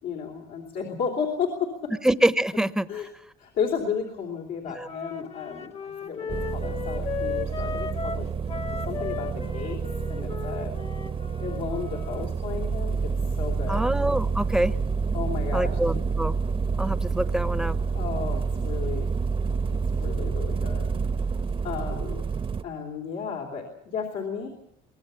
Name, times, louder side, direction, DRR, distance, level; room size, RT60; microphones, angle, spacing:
voice 1, 0.0-1.9 2.9-3.1 3.4-8.3 8.8-10.7 11.4-13.8 15.1-15.8 17.9-19.1 19.7-20.9 21.6-22.2 22.6-24.5, left 6 dB, 80° left, 0 dB, 3.5 m, -33 dB
voice 2, 2.0-2.9 4.7-4.9 13.7-14.8 15.5-16.4 16.8-17.8, right 1 dB, 5° right, 13 dB, 0.9 m, -25 dB
Wind instrument woodwind instrument, 4.8-12.3, left 6 dB, 35° left, 1.3 m, -36 dB
sound 1, 6.3-22.6, right 5 dB, 30° right, 0.9 m, -28 dB
24.0 x 18.5 x 7.1 m, 0.77 s
cardioid pair, 110°, 17 cm